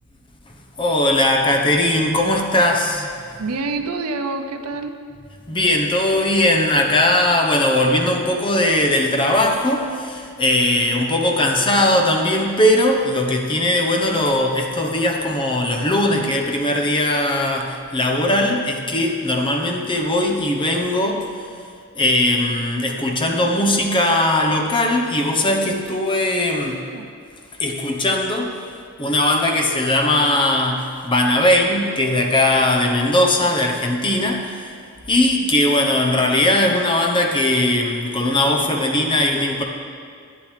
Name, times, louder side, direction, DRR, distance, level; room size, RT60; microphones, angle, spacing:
voice 1, 0.8-3.2 5.5-21.3 21.9-26.8 27.6-28.6 29.0-34.7 35.1-39.6, left 1 dB, 20° left, 2 dB, 0.9 m, -19 dB
voice 2, 3.4-4.9 18.4-19.0 26.6-27.1, right 3 dB, 85° right, 6 dB, 0.7 m, -28 dB
11.5 x 9.7 x 3.3 m, 2.1 s
head